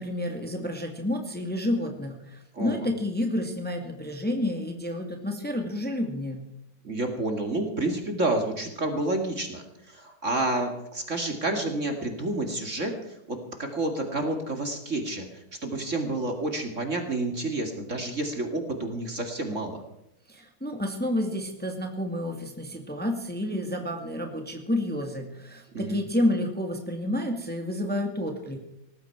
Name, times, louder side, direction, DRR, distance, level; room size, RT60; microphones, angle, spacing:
voice 1, 0.0-6.4 20.3-28.6, left 1 dB, 5° left, 3 dB, 2.1 m, -30 dB
voice 2, 2.5-2.9 6.8-19.8 25.7-26.0, right 2 dB, 35° right, 4 dB, 2.4 m, -29 dB
19.0 x 15.0 x 4.6 m, 0.83 s
omnidirectional pair, 2.2 m